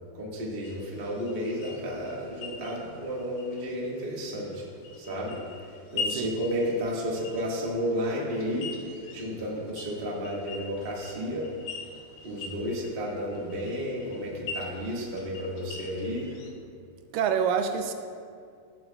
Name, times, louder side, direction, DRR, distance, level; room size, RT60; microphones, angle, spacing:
voice 1, 0.1-4.6 5.0-5.4 5.9-8.7 9.1-11.5 12.2-16.3, equal, 50° right, -4 dB, 0.6 m, -32 dB
sound 1, 0.6-16.5, left 4 dB, 80° left, 2.8 m, -42 dB
voice 2, 17.1-17.9, right 7 dB, 80° right, 7 dB, 2.1 m, -26 dB
18.5 x 7.7 x 2.3 m, 2.3 s
omnidirectional pair, 4.0 m